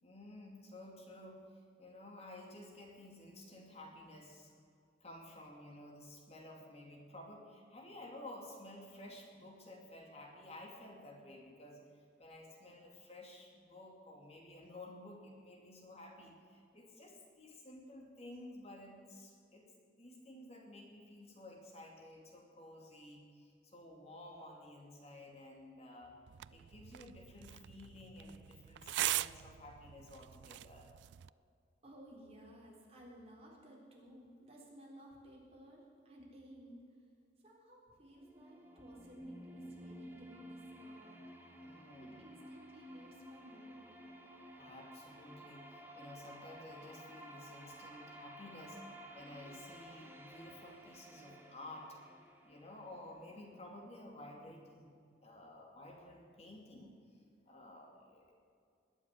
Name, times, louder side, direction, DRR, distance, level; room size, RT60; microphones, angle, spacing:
voice 1, 0.0-4.5 5.0-19.7 20.0-26.2 26.5-30.9 41.6-42.2 44.6-52.0 52.4-54.9 55.2-57.2 57.5-58.3, left 1 dB, 35° left, 0 dB, 2.6 m, -53 dB
sound 1, 26.3-31.3, right 14 dB, 75° right, 0.3 m, -41 dB
voice 2, 31.8-37.0 37.4-41.3 41.7-44.0, equal, 35° right, -3 dB, 3.9 m, -57 dB
sound 2, 38.0-54.0, equal, 10° right, 1.7 m, -54 dB
20.5 x 7.3 x 9.7 m, 2.2 s
head